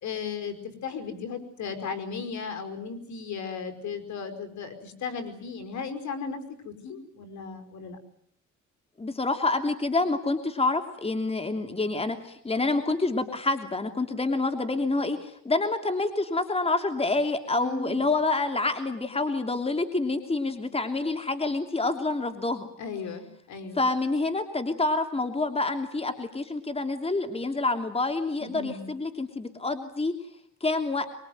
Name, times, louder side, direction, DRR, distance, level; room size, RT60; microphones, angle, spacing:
voice 1, 0.0-8.0 17.5-18.0 22.8-23.9 28.4-28.8, left 5 dB, 70° left, 7 dB, 5.3 m, -36 dB
voice 2, 9.0-22.7 23.8-30.1 30.6-31.1, left 3 dB, 20° left, 7 dB, 3.1 m, -27 dB
24.5 x 23.0 x 9.5 m, 0.67 s
cardioid pair, 90°, 30 cm